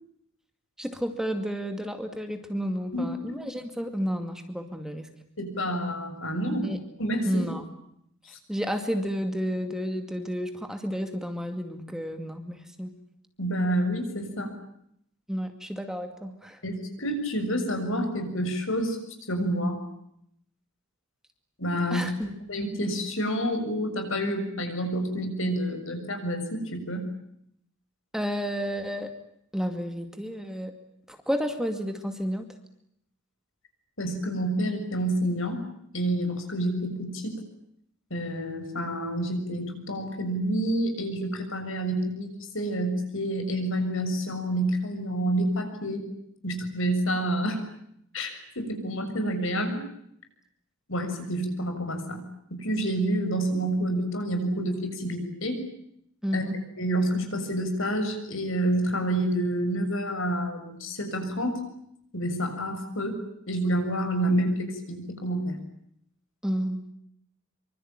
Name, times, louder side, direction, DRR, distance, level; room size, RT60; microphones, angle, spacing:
voice 1, 0.8-5.1 6.6-6.8 7.2-7.7 8.5-12.9 15.3-16.6 21.9-22.3 28.1-29.1 29.5-30.7 31.1-32.4 56.2-56.6 66.4-66.8, equal, 5° right, 6 dB, 2.3 m, -31 dB
voice 2, 2.9-3.4 5.4-6.7 7.0-7.5 8.3-8.4 13.4-14.5 16.6-19.0 19.3-19.8 21.6-27.1 34.0-35.6 35.9-37.4 38.1-46.1 46.4-47.6 48.1-49.8 50.9-52.2 52.5-55.6 56.3-56.4 56.8-61.6 62.1-63.2 63.5-65.6, right 1 dB, 65° left, 6 dB, 6.9 m, -28 dB
26.0 x 25.0 x 9.0 m, 0.74 s
head